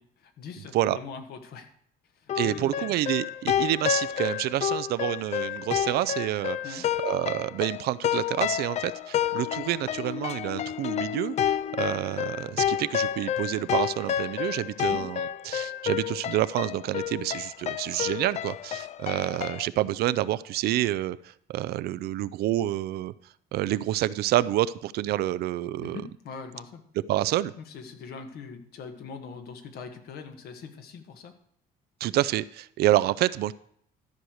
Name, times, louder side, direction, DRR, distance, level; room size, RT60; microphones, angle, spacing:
voice 1, 0.0-1.7 2.1-2.9 6.6-6.9 14.8-15.0 25.8-26.8 27.6-31.3, left 5 dB, 70° left, 6 dB, 1.5 m, -42 dB
sound 1, 2.3-19.7, left 10 dB, 40° left, 0.4 m, -30 dB
voice 2, 2.4-23.1 23.5-26.0 27.1-27.5 32.0-33.5, right 14 dB, 70° right, 16 dB, 0.4 m, -28 dB
13.0 x 4.7 x 6.4 m, 0.66 s
cardioid pair, 110°, 17 cm